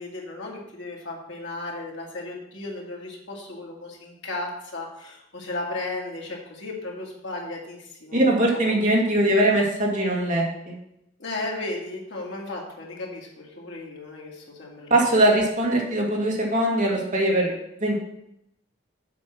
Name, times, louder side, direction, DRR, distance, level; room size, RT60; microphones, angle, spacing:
voice 1, 0.0-8.8 11.2-15.4, left 2 dB, 75° left, -2 dB, 2.1 m, -35 dB
voice 2, 8.1-10.7 14.9-17.6 17.8-18.0, right 1 dB, 40° right, -2 dB, 1.9 m, -21 dB
7.5 x 5.5 x 5.9 m, 0.80 s
head